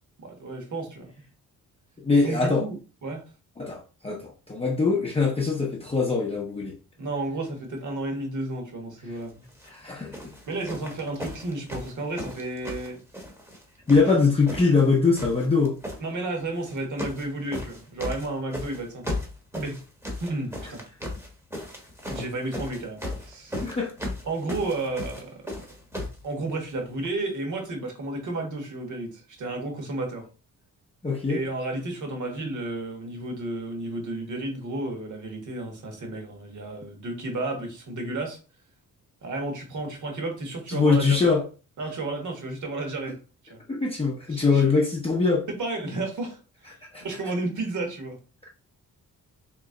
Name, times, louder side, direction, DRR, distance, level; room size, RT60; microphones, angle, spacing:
voice 1, 0.2-1.1 2.2-2.8 3.0-3.2 7.0-9.4 10.5-13.0 16.0-19.2 19.5-19.8 20.2-20.8 22.1-23.7 24.2-25.7 26.2-30.3 31.3-38.4 39.2-41.2 41.8-43.2 43.4-43.6 44.3-44.6 45.5-46.4 47.0-48.2, right 2 dB, 55° right, 1.3 m, -32 dB
voice 2, 2.0-2.7 3.6-6.8 9.6-10.2 13.9-15.8 23.6-23.9 31.0-31.4 40.7-41.4 43.7-45.5 46.9-47.1, left 4 dB, 15° left, 0.6 m, -22 dB
sound 1, 9.5-9.7 10.1-13.6 13.9-14.9 15.1-16.0 16.6-17.3 17.5-26.2 27.0-27.1, left 1 dB, 5° right, 0.9 m, -36 dB
3.3 x 3.0 x 3.7 m
wide cardioid pair, 140°, 36 cm